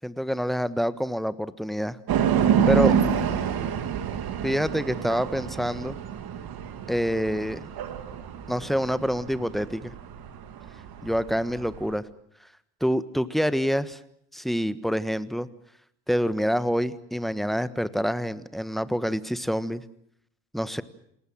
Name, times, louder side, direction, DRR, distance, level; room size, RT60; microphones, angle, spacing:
voice 1, 0.0-2.0 2.7-3.0 4.4-6.0 6.9-7.7 8.5-9.9 11.0-12.0 12.8-14.0 14.3-15.5 16.1-19.8 20.5-20.8, equal, ahead, 15 dB, 1.4 m, -26 dB
sound 1, 2.1-11.9, right 8 dB, 50° right, 3.1 m, -27 dB
28.0 x 19.5 x 7.5 m, 0.73 s
hypercardioid pair, 60°, 47 cm